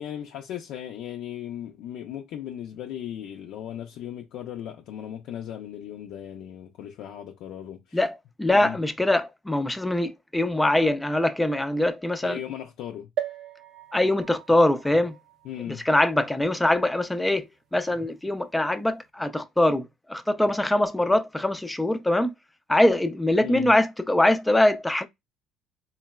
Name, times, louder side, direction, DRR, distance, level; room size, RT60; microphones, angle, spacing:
voice 1, 0.0-8.0 8.6-8.8 12.2-13.1 15.4-15.8 23.4-23.7, left 10 dB, 70° left, 0.4 m, -37 dB
voice 2, 7.9-12.4 13.9-15.2 15.7-17.5 17.7-22.3 22.7-25.1, left 1 dB, 10° left, 0.4 m, -23 dB
sound 1, 13.2-16.8 17.4-17.5 17.7-17.8, right 9 dB, 65° right, 0.6 m, -38 dB
3.8 x 2.1 x 2.2 m
supercardioid pair, 75°, 0 cm